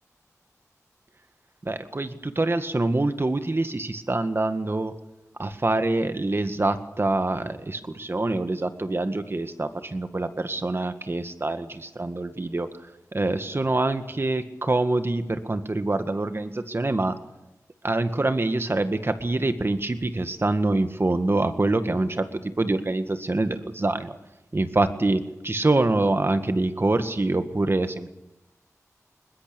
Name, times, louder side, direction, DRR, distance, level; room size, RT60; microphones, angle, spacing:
voice 1, 1.6-4.9 5.4-12.7 13.1-17.2 17.8-24.1 24.5-28.1, right 2 dB, 45° right, 9 dB, 1.8 m, -25 dB
21.5 x 20.5 x 7.0 m, 0.94 s
wide cardioid pair, 60°, 6 cm